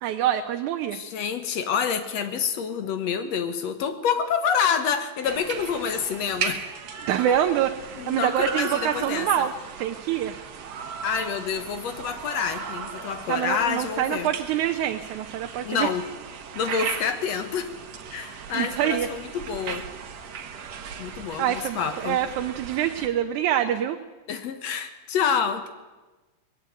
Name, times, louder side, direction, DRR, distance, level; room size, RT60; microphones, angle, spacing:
voice 1, 0.0-1.0 7.1-9.5 9.8-10.3 13.3-15.9 18.3-19.1 20.6-20.7 21.0-24.0, right 11 dB, 85° right, 6 dB, 2.3 m, -26 dB
voice 2, 0.9-6.6 7.3-7.4 7.9-9.5 11.0-14.3 15.6-16.1 16.6-17.7 18.1-19.9 21.0-22.2 24.3-25.7, left 7 dB, 65° left, 9 dB, 2.3 m, -27 dB
sound 1, 5.2-23.1, right 7 dB, 65° right, 2.6 m, -37 dB
20.0 x 15.0 x 9.3 m, 1.2 s
omnidirectional pair, 3.4 m